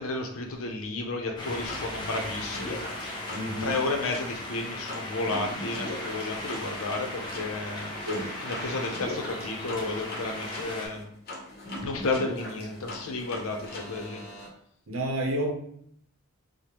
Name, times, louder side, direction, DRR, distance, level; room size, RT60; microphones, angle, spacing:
voice 1, 0.0-2.8 3.6-7.9 8.4-11.1 11.8-14.2, left 3 dB, 75° left, 3 dB, 0.6 m, -32 dB
sound 1, 1.4-10.9, left 1 dB, 20° left, 0.5 m, -38 dB
sound 2, 1.7-14.5, left 1 dB, 45° left, 0.8 m, -40 dB
voice 2, 3.3-3.8 8.0-8.4 14.9-15.5, right 1 dB, 70° right, 1 dB, 0.7 m, -30 dB
4.9 x 2.1 x 2.9 m, 0.66 s
head